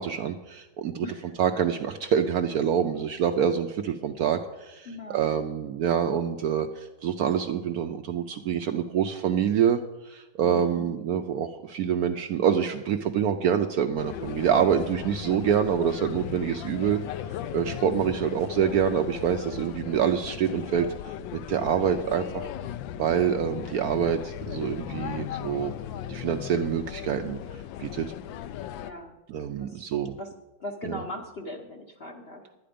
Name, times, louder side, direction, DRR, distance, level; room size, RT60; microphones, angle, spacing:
voice 1, 0.0-1.1 1.4-17.0 17.5-22.5 23.0-25.7 26.1-27.4 27.8-28.1 29.3-30.1 30.9-31.0, right 8 dB, 70° right, 7 dB, 0.9 m, -26 dB
voice 2, 1.0-1.5 4.9-5.5 10.4-10.9 17.6-18.0 21.8-22.6 28.7-29.2 29.6-29.9 30.2-30.3 30.6-32.6, left 1 dB, 50° left, 3 dB, 0.8 m, -40 dB
sound 1, 14.0-28.9, left 10 dB, 85° left, 1.3 m, -37 dB
11.0 x 9.4 x 5.1 m, 1.0 s
omnidirectional pair, 2.0 m